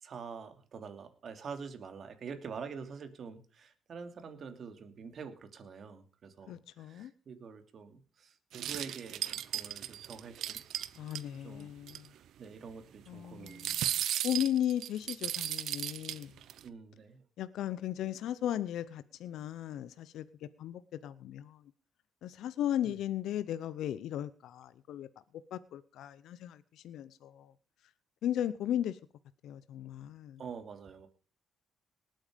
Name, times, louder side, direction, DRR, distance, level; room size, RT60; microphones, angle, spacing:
voice 1, 0.0-10.6 11.4-11.7 12.4-14.0 16.6-17.2 22.8-22.9 30.4-31.1, right 5 dB, 55° right, 2.8 m, -46 dB
voice 2, 6.5-7.1 11.0-12.1 13.1-14.0 14.2-16.3 17.4-21.6 22.2-25.1 25.5-27.5 28.2-29.0 29.4-30.4, left 11 dB, 80° left, 0.7 m, -36 dB
sound 1, 8.5-11.2 11.6-11.7 11.9-12.1 13.5-16.6, right 11 dB, 75° right, 0.8 m, -35 dB
19.0 x 8.9 x 5.1 m
cardioid pair, 90°, 0 cm